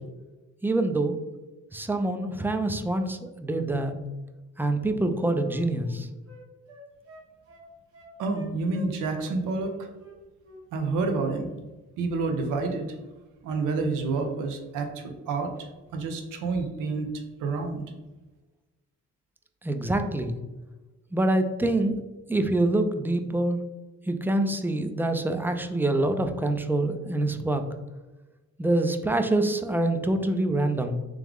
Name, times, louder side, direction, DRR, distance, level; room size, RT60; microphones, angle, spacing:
voice 1, 0.6-1.2 1.7-3.9 4.6-6.1 19.6-20.4 21.1-22.0 22.3-23.6 24.1-27.6 28.6-31.0, right 2 dB, 5° right, 7 dB, 0.4 m, -25 dB
Wind instrument woodwind instrument, 4.6-9.3 9.6-10.6 10.9-11.1, right 1 dB, 50° right, 1.2 m, -50 dB
voice 2, 8.2-9.9 10.7-11.5 12.0-12.9 13.4-17.1 17.4-17.8, right 3 dB, 85° right, 5 dB, 0.7 m, -29 dB
3.5 x 3.1 x 3.5 m, 1.1 s
cardioid pair, 90°, 30 cm